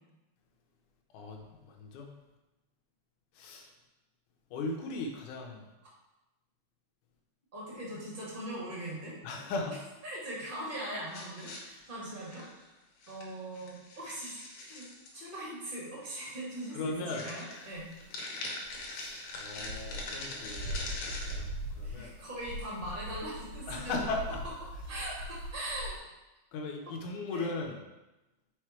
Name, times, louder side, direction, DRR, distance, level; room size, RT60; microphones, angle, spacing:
voice 1, 1.1-2.2 3.4-3.7 4.5-5.7 9.2-9.8 16.7-17.3 18.9-22.1 23.7-24.4 26.5-27.8, left 3 dB, 80° left, 2 dB, 2.3 m, -38 dB
voice 2, 7.5-9.1 10.0-12.4 13.1-14.9 15.1-17.9 21.8-24.2 24.9-26.0 27.3-27.5, right 1 dB, 20° right, -7 dB, 2.0 m, -40 dB
sound 1, 11.1-12.7 13.0-13.3 13.5-15.1 16.1-16.2 16.6-16.7 17.1-21.4, left 2 dB, 65° left, 2.2 m, -42 dB
sound 2, 17.7-18.0 18.6-26.0, equal, 85° right, 2.6 m, -41 dB
5.6 x 4.9 x 4.4 m, 1.0 s
omnidirectional pair, 3.5 m